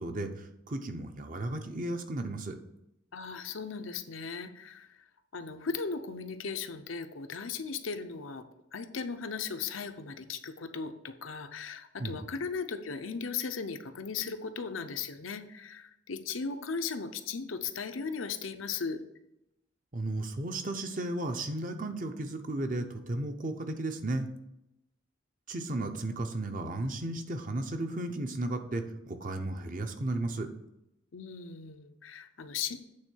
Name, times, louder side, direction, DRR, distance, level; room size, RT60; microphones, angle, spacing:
voice 1, 0.0-2.6 12.0-12.2 19.9-24.3 25.5-30.5, right 2 dB, 45° right, 6 dB, 0.8 m, -34 dB
voice 2, 3.1-5.0 5.3-8.4 8.7-19.0 31.1-32.8, left 5 dB, 85° left, 8 dB, 0.7 m, -37 dB
8.7 x 3.7 x 6.3 m, 0.85 s
head